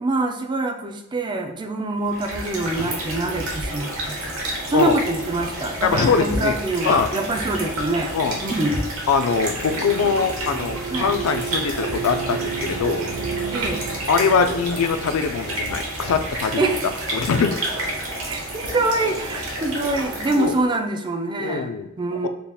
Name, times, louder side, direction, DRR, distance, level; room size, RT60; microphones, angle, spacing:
voice 1, 0.0-4.4 4.7-8.1 8.4-8.9 10.9-11.1 13.5-13.9 16.6-17.0 18.3-22.3, right 2 dB, 20° right, 4 dB, 0.4 m, -25 dB
sound 1, 2.0-20.7, right 1 dB, 70° right, 1.2 m, -30 dB
voice 2, 5.8-6.6 6.8-7.1 8.1-8.4 9.1-13.1 14.1-16.6 17.1-17.6 20.4-20.5 21.4-21.9 22.2-22.3, left 5 dB, 70° left, 9 dB, 0.4 m, -22 dB
sound 2, 9.7-14.9, right 6 dB, 90° right, 0.6 m, -32 dB
6.7 x 2.8 x 2.2 m, 0.93 s
head